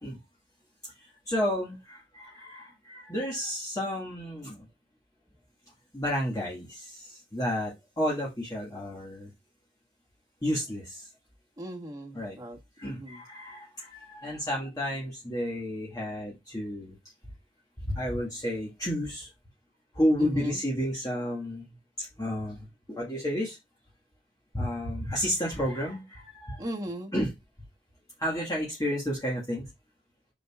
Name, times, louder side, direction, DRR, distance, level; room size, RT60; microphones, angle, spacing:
voice 1, 1.0-4.6 5.9-9.3 10.4-11.1 12.1-12.4 12.8-16.9 17.8-19.3 19.9-23.6 24.5-26.7 27.1-27.3 28.2-29.7, equal, 20° left, 1.7 m, -31 dB
voice 2, 11.6-12.6 12.8-13.2 20.2-20.6 26.6-27.1, equal, 20° right, 1.5 m, -37 dB
6.6 x 6.3 x 2.4 m
head